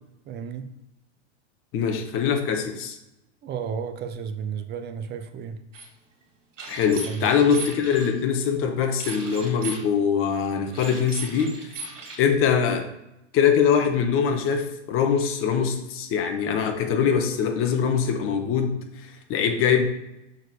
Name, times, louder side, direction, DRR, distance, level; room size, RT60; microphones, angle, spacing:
voice 1, 0.3-0.7 3.4-5.6 7.0-7.3, right 7 dB, 30° right, 8 dB, 0.7 m, -32 dB
voice 2, 1.7-3.0 6.7-11.7 12.2-12.9 13.3-19.8, left 7 dB, 35° left, 4 dB, 1.3 m, -23 dB
sound 1, 5.7-5.9 6.6-8.1 9.0-9.9 10.7-12.2, right 3 dB, 90° right, 2.6 m, -37 dB
6.6 x 4.6 x 4.7 m, 0.88 s
hypercardioid pair, 125°, 36 cm